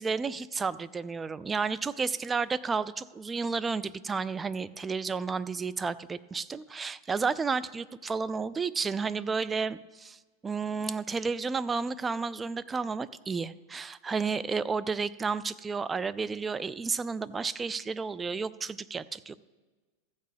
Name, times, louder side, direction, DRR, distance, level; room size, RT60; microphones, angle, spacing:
voice 1, 0.0-19.4, right 5 dB, 20° right, 17 dB, 0.4 m, -32 dB
14.5 x 6.7 x 5.1 m, 1.3 s
hypercardioid pair, 110°, 0 cm